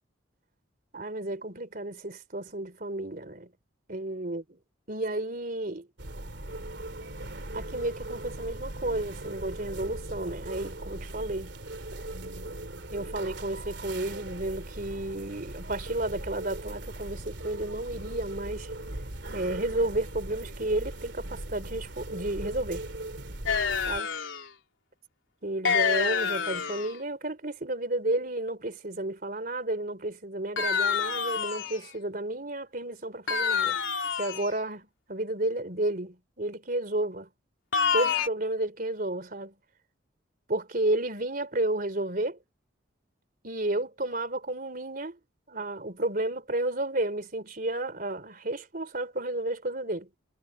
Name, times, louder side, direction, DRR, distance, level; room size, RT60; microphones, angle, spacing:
voice 1, 0.9-3.5 3.9-4.6 4.9-5.9 7.5-11.5 12.9-18.7 19.3-22.9 23.8-24.1 25.4-33.8 34.2-37.3 37.9-39.5 40.5-42.4 43.4-45.2 45.5-50.1, right 1 dB, 45° right, 3.6 m, -32 dB
sound 1, 6.0-24.0, right 1 dB, 65° right, 2.9 m, -39 dB
sound 2, 23.5-24.5 25.6-26.9 30.6-31.9 33.3-34.6 37.7-38.3, left 6 dB, 85° left, 3.6 m, -27 dB
head